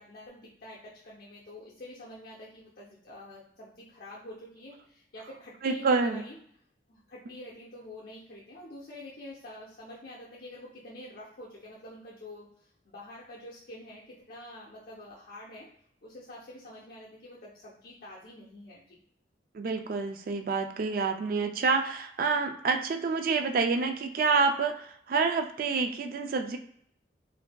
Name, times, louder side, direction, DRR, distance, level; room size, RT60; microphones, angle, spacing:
voice 1, 0.0-6.4 6.9-15.7 16.0-19.0, left 1 dB, 55° left, -6 dB, 0.7 m, -47 dB
voice 2, 5.6-6.2 19.5-26.6, right 4 dB, 50° right, 6 dB, 0.3 m, -28 dB
4.5 x 2.6 x 2.2 m, 0.65 s
head